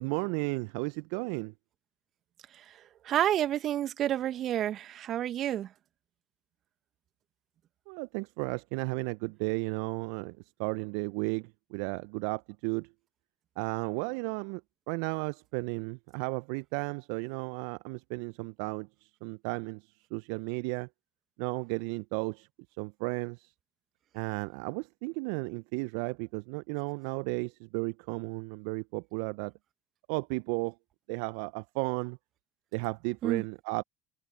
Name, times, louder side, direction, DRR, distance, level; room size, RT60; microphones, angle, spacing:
voice 1, 0.0-1.5 7.9-12.9 13.6-14.6 14.9-20.9 21.4-22.5 22.8-23.5 24.1-29.5 30.1-30.8 31.1-32.2 32.7-33.8, right 30 dB, 65° right, 0.8 m, -34 dB
voice 2, 2.5-5.7 33.2-33.4, right 11 dB, 50° right, 1.8 m, -30 dB
hypercardioid pair, 65°, 0 cm